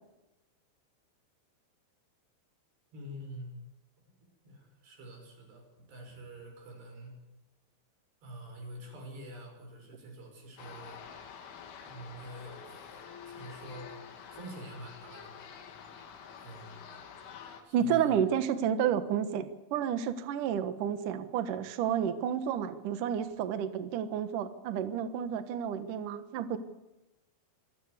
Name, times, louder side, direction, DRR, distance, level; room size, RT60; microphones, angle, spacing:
voice 1, 2.9-3.6 4.0-4.1 4.4-7.2 8.2-11.1 11.8-12.8 13.3-15.8 16.4-16.9 17.6-18.2, right 1 dB, 55° right, 3 dB, 8.1 m, -47 dB
sound 1, 10.6-17.6, left 7 dB, 75° left, 4.7 m, -48 dB
voice 2, 17.7-26.6, right 8 dB, 75° right, 10 dB, 1.9 m, -31 dB
26.5 x 16.0 x 8.2 m, 0.96 s
omnidirectional pair, 5.8 m